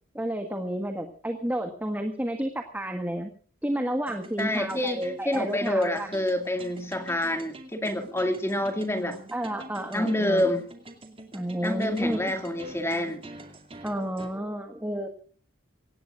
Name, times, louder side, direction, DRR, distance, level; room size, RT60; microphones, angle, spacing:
voice 1, 0.2-3.3 3.6-6.1 9.3-10.6 11.3-12.3 13.8-15.1, right 1 dB, 10° right, 5 dB, 1.6 m, -31 dB
sound 1, 4.1-14.3, right 2 dB, 25° right, 2.5 m, -46 dB
voice 2, 4.4-9.2 9.9-10.6 11.6-13.2, left 1 dB, 10° left, 6 dB, 2.1 m, -27 dB
25.0 x 18.5 x 2.5 m, 0.43 s
head